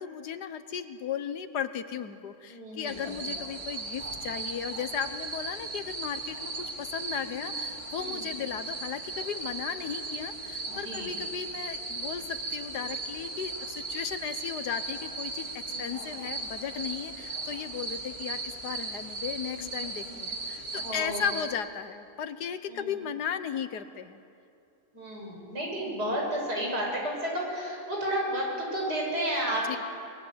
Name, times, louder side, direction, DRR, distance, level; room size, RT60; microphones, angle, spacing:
voice 1, 0.0-6.5 6.8-24.2 29.7-29.8, left 8 dB, 75° left, 11 dB, 1.6 m, -36 dB
voice 2, 2.5-3.3 7.2-7.4 7.9-8.5 10.6-11.2 15.7-16.0 19.4-20.2 20.7-21.3 22.7-23.0 24.9-29.8, equal, 80° right, -2 dB, 6.8 m, -33 dB
sound 1, 2.8-21.5, right 3 dB, 35° right, 2.6 m, -37 dB
26.5 x 21.5 x 8.0 m, 2.5 s
omnidirectional pair, 1.8 m